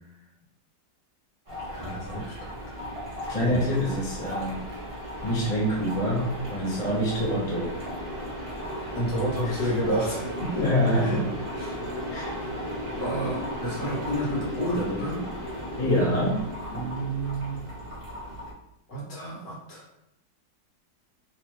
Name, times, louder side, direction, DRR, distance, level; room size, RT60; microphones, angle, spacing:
sound 1, 1.5-18.5, equal, 25° right, 0.9 m, -35 dB
voice 1, 1.7-2.5 3.4-3.6 8.9-10.7 11.0-11.2 11.5-11.8 12.9-15.3 16.7-17.6 18.9-19.8, right 1 dB, 55° left, -5 dB, 1.6 m, -30 dB
voice 2, 3.3-4.6 5.2-7.7 9.4-9.7 10.6-11.1 12.1-12.3 15.8-16.4, equal, 35° left, -5 dB, 0.6 m, -26 dB
3.3 x 2.9 x 3.1 m, 0.81 s
omnidirectional pair, 1.9 m